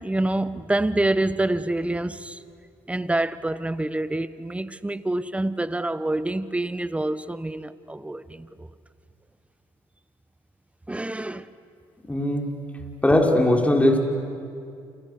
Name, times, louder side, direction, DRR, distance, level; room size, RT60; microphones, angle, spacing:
voice 1, 0.0-2.4 2.9-8.7 10.9-11.5, right 2 dB, 10° right, 1.2 m, -27 dB
voice 2, 12.1-12.4 13.0-14.0, left 1 dB, 10° left, 5.0 m, -19 dB
29.0 x 28.0 x 6.8 m
supercardioid pair, 60°, 11 cm